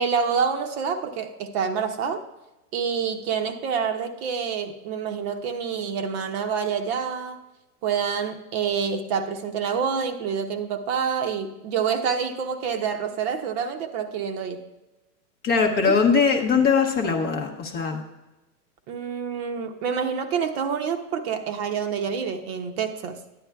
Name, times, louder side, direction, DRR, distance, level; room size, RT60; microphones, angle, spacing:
voice 1, 0.0-2.2 2.7-7.4 7.8-14.6 15.8-16.0 18.9-23.2, right 6 dB, 40° right, 7 dB, 0.8 m, -27 dB
voice 2, 15.4-18.0, left 5 dB, 20° left, 2 dB, 0.7 m, -21 dB
13.5 x 10.0 x 2.3 m, 1.1 s
hypercardioid pair, 140°, 48 cm